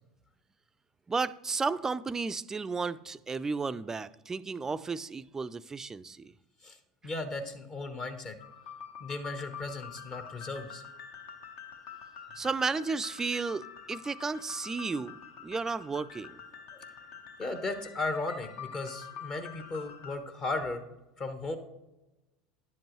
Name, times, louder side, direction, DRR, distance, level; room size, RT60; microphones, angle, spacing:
voice 1, 1.1-6.3 12.4-16.4, right 4 dB, 20° right, 0.4 m, -33 dB
voice 2, 7.0-8.4 9.0-10.8 16.7-16.8 17.4-20.8 21.2-21.6, left 2 dB, 40° left, 1.0 m, -36 dB
sound 1, 8.4-20.2, left 7 dB, 60° left, 0.9 m, -46 dB
10.5 x 7.5 x 3.1 m
hypercardioid pair, 75°, 2 cm